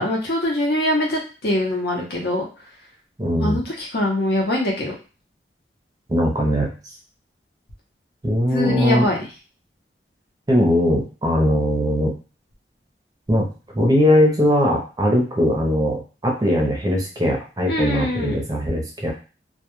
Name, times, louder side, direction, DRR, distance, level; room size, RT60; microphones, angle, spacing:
voice 1, 0.0-2.4 3.4-4.9 8.5-9.2 17.7-18.3, left 1 dB, 60° left, -2 dB, 0.7 m, -23 dB
voice 2, 3.2-3.6 6.1-6.7 8.2-9.1 10.5-12.1 13.3-13.5 13.7-19.1, equal, 20° right, 0 dB, 0.6 m, -20 dB
2.2 x 2.2 x 3.0 m, 0.34 s
head